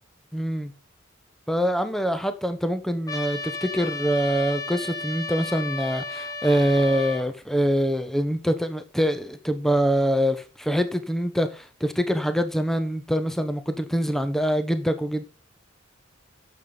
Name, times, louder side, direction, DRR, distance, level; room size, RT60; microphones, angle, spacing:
voice 1, 0.3-0.7 1.5-15.2, equal, ahead, 0.8 m, -24 dB
Trumpet, 3.1-7.3, left 3 dB, 20° left, 1.2 m, -33 dB
9.0 x 6.9 x 3.9 m
head